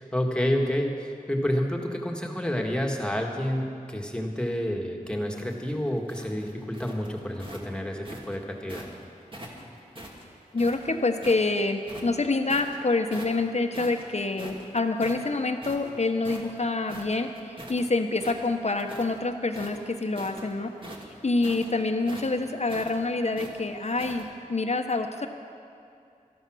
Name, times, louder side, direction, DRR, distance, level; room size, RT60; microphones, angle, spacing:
voice 1, 0.0-8.9, equal, 5° left, 1 dB, 1.9 m, -29 dB
sound 1, 5.2-8.9 9.3-11.5 11.8-12.8 13.1-13.5 13.7-17.8 18.1-19.2 19.5-24.2, right 1 dB, 35° right, 2.1 m, -43 dB
voice 2, 10.5-20.7 21.2-25.3, left 3 dB, 50° left, 6 dB, 1.1 m, -27 dB
13.5 x 12.5 x 6.3 m, 2.5 s
wide cardioid pair, 50°, 15 cm